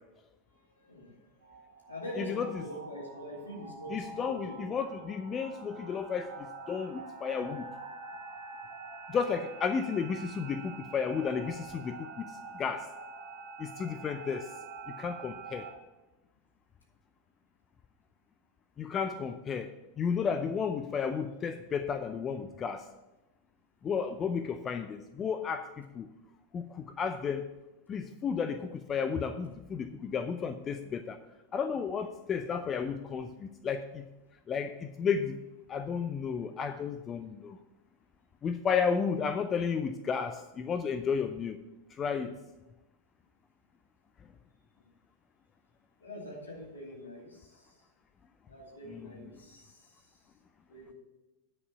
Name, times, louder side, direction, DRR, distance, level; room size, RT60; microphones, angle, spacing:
voice 1, 0.5-1.6 1.9-4.8 46.0-47.8 48.5-50.0 50.7-50.9, equal, 70° left, -1 dB, 2.4 m, -44 dB
sound 1, 1.4-15.7, right 4 dB, 50° right, 2.0 m, -46 dB
voice 2, 2.2-2.6 3.9-6.3 6.7-7.7 9.1-12.8 13.6-14.5 15.0-15.7 18.8-22.8 23.8-26.1 26.5-27.4 27.9-31.2 31.5-34.0 34.5-35.4 35.7-37.6 38.4-41.6 42.0-42.3 48.9-49.1, left 6 dB, 25° left, 10 dB, 0.5 m, -33 dB
9.6 x 5.3 x 6.9 m, 1.0 s
figure-of-eight pair, 90°, 0 cm